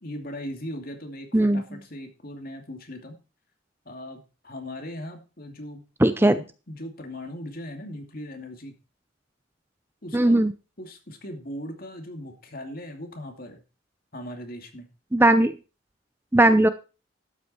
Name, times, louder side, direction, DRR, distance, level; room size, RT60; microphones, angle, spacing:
voice 1, 0.0-3.2 3.8-5.8 6.2-8.7 10.0-10.5 10.8-13.6 14.1-14.9, left 1 dB, 50° left, 4 dB, 2.6 m, -39 dB
voice 2, 6.0-6.4 10.1-10.5 15.1-15.5 16.3-16.7, right 1 dB, 10° right, 11 dB, 0.5 m, -18 dB
12.5 x 8.5 x 4.4 m, 0.33 s
head